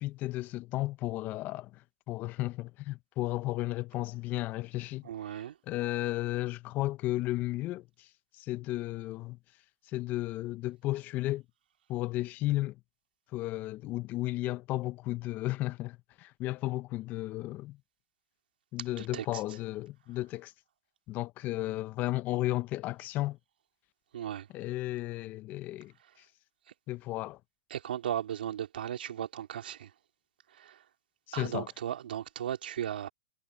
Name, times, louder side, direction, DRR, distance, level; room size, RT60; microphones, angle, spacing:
voice 1, 0.0-5.0 5.7-8.1 8.3-9.4 9.9-11.4 11.9-12.8 13.3-17.8 18.7-20.5 21.1-23.4 24.5-26.3 26.9-27.4 31.3-31.7, left 17 dB, 35° left, 0.8 m, -34 dB
voice 2, 5.0-5.6 18.8-19.4 24.1-24.5 27.7-29.9 30.5-30.8 31.3-33.1, right 10 dB, 75° right, 3.4 m, -36 dB
hypercardioid pair, 130°, 5 cm